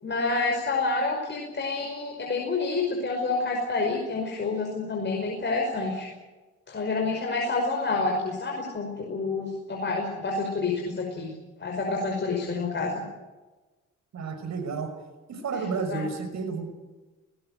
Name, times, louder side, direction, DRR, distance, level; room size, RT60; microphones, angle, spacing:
voice 1, 0.0-6.1 6.7-11.3 11.6-13.0 15.9-16.0, left 3 dB, 35° left, 1 dB, 5.5 m, -28 dB
voice 2, 14.1-14.9 15.3-16.7, right 4 dB, 65° right, 6 dB, 6.1 m, -31 dB
21.0 x 18.5 x 9.2 m, 1.2 s
cardioid pair, 90°, 30 cm